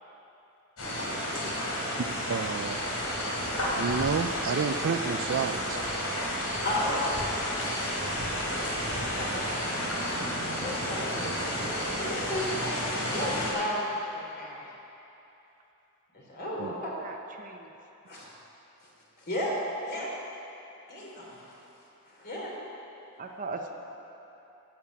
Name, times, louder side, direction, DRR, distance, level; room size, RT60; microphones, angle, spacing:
sound 1, 0.8-13.5, equal, 80° left, 3.4 m, -31 dB
voice 1, 1.0-1.9 6.6-7.2 7.6-7.9 9.0-9.3 10.6-14.6 16.1-16.7 18.1-18.3 19.2-19.5 19.8-20.1 20.9-21.6 22.1-22.5, left 1 dB, 45° left, -4 dB, 3.2 m, -34 dB
voice 2, 2.3-2.8 3.8-5.8 16.6-16.7, right 6 dB, 60° right, 11 dB, 0.4 m, -30 dB
voice 3, 16.8-17.7 23.2-23.7, right 3 dB, 40° right, 3 dB, 0.8 m, -39 dB
12.0 x 7.4 x 8.4 m, 3.0 s
head